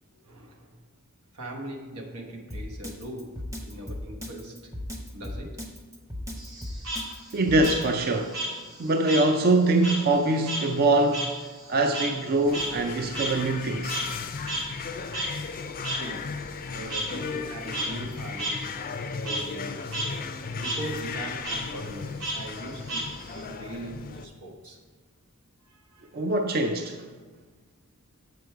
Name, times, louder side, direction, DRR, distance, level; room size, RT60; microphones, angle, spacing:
voice 1, 0.1-0.8 1.3-4.8 5.1-5.7 15.9-20.0 20.6-24.8 25.6-26.2, right 1 dB, 85° right, 1.2 m, -40 dB
Drum kit, 2.5-7.8, left 1 dB, 15° right, 0.8 m, -36 dB
Frog, 6.4-9.3 9.6-14.2 14.5-14.6 15.1-15.3 15.8-16.0 16.9-17.0 17.6-17.9 18.4-18.5 18.9-19.4 19.8-20.1 20.4-20.8 21.4-21.6 22.2-23.4, right 1 dB, 60° right, 1.9 m, -32 dB
voice 2, 7.3-8.4 8.8-11.3 11.7-14.0 26.1-27.1, right 2 dB, 45° right, 0.4 m, -23 dB
sound 1, 12.4-24.3, left 5 dB, 40° left, 0.4 m, -36 dB
7.6 x 5.2 x 4.5 m
head